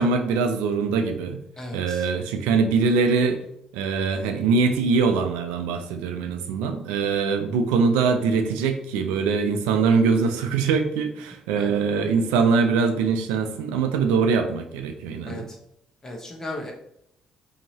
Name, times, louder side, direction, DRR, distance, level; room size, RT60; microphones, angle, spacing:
voice 1, 0.0-1.4 1.7-3.4 3.7-15.5, right 5 dB, 90° right, 6 dB, 0.4 m, -22 dB
voice 2, 1.6-2.1 11.6-11.8 15.2-15.6 16.0-16.7, left 1 dB, 25° left, 0 dB, 1.0 m, -36 dB
2.8 x 2.7 x 2.8 m, 0.76 s
supercardioid pair, 60°, 2 cm